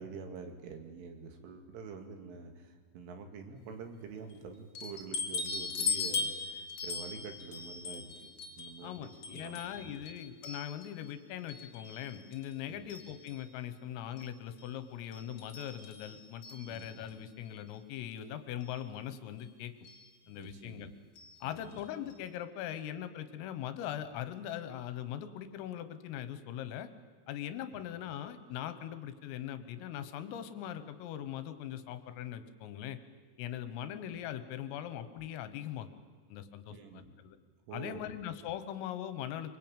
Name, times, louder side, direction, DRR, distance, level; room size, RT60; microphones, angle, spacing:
voice 1, 0.0-8.1 8.5-9.0 9.3-10.0 12.7-12.9 16.6-16.9 20.3-20.9 21.4-21.8 36.7-37.2 37.7-38.2, right 5 dB, 70° right, 5 dB, 4.6 m, -47 dB
sound 1, 4.7-11.1 11.5-12.5 12.9-13.5 14.2-14.3 14.6-14.7 15.1-17.1 18.1-18.2 18.6-18.7 19.8-20.1 21.2-21.4 21.7-21.8 22.1-22.2, left 4 dB, 45° left, 3.3 m, -39 dB
voice 2, 8.8-19.7 20.3-20.9 21.4-26.9 27.3-33.0 33.4-35.9 36.3-37.4 37.7-39.6, left 10 dB, 80° left, 11 dB, 3.9 m, -41 dB
25.0 x 24.0 x 9.0 m, 1.5 s
omnidirectional pair, 6.0 m